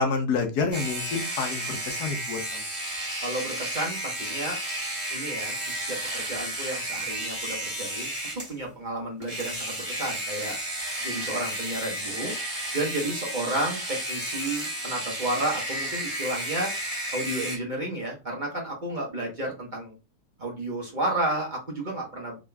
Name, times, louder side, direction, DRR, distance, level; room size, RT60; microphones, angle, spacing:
voice 1, 0.0-2.6, left 4 dB, 85° left, 6 dB, 1.4 m, -28 dB
sound 1, 0.7-8.5 9.2-17.6, right 1 dB, 5° right, 1.9 m, -32 dB
voice 2, 3.2-4.6 5.1-8.1 8.3-10.6 11.0-12.3 12.7-16.7 17.1-19.9 20.4-22.4, right 1 dB, 35° right, -2 dB, 1.0 m, -32 dB
3.7 x 3.6 x 2.2 m, 0.27 s
omnidirectional pair, 1.7 m